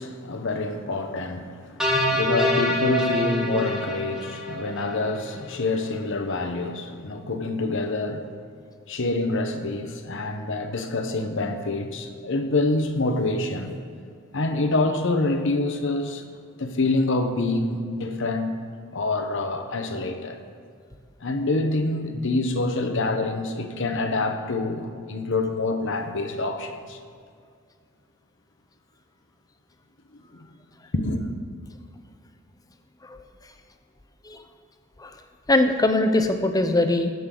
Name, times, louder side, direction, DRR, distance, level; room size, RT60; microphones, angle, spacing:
voice 1, 0.0-8.3 8.9-13.7 14.3-18.6 18.9-20.4 21.2-27.0 30.9-31.2, left 2 dB, 60° left, 7 dB, 1.0 m, -26 dB
sound 1, 1.8-5.1, left 1 dB, 5° right, 1.7 m, -25 dB
voice 2, 35.5-37.1, left 2 dB, 15° left, 7 dB, 0.7 m, -22 dB
19.5 x 7.9 x 3.9 m, 2.2 s
head